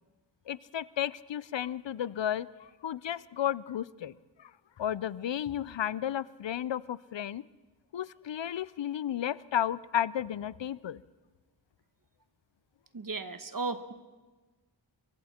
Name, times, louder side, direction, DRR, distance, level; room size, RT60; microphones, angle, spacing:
voice 1, 0.5-4.1 4.4-4.5 4.8-7.4 7.9-11.0, left 10 dB, 70° left, 19 dB, 0.6 m, -33 dB
voice 2, 12.9-13.9, right 3 dB, 45° right, 10 dB, 1.4 m, -35 dB
29.5 x 23.5 x 4.4 m, 1.3 s
wide cardioid pair, 75°, 45 cm